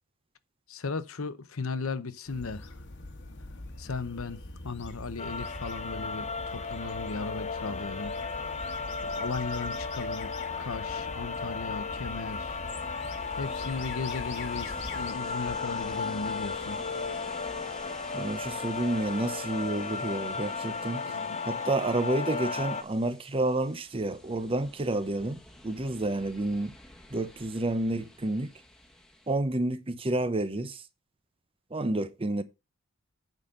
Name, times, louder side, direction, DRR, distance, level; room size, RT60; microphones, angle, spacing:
voice 1, 0.7-2.8 3.8-8.2 9.0-10.3 10.6-12.6 13.3-16.8 21.1-21.6, left 4 dB, 70° left, 0.8 m, -36 dB
sound 1, 2.3-15.1, left 2 dB, 55° left, 1.3 m, -43 dB
sound 2, 5.2-22.8, left 4 dB, 30° left, 0.9 m, -35 dB
Ocean, 12.1-29.4, left 1 dB, 5° left, 1.3 m, -51 dB
voice 2, 18.1-21.0 21.4-26.7 27.1-28.5 29.3-30.8 31.7-32.4, right 2 dB, 25° right, 0.7 m, -30 dB
9.2 x 4.1 x 6.5 m
head